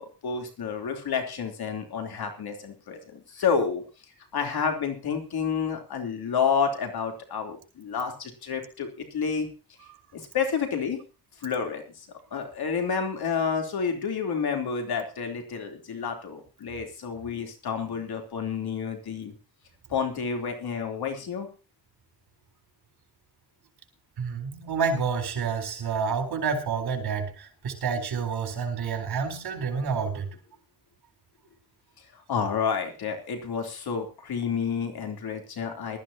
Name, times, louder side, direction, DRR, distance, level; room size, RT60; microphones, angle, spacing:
voice 1, 0.0-3.8 4.3-9.5 10.1-11.0 11.4-12.1 12.3-19.3 19.9-21.5 32.3-36.0, left 6 dB, 80° left, 4 dB, 3.6 m, -29 dB
voice 2, 24.2-30.3, right 5 dB, 85° right, 3 dB, 4.1 m, -29 dB
20.5 x 13.0 x 2.9 m, 0.34 s
cardioid pair, 105°, 37 cm